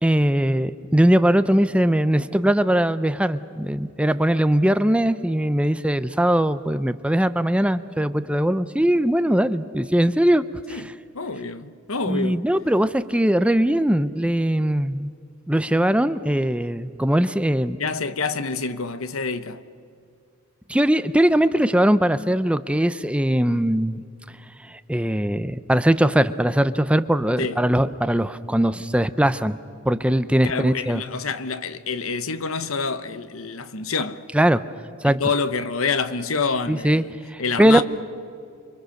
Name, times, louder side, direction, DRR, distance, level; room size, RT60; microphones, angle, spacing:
voice 1, 0.0-10.8 12.1-15.1 15.5-17.8 20.7-24.0 24.7-29.6 29.9-31.0 34.3-34.6 35.0-35.2 36.7-37.0 37.3-37.8, right 1 dB, 5° right, 0.6 m, -20 dB
voice 2, 10.7-12.4 17.8-19.6 27.4-27.6 30.4-34.3 35.0-37.1 37.4-37.8, left 4 dB, 75° left, 1.1 m, -27 dB
29.5 x 24.0 x 6.6 m
head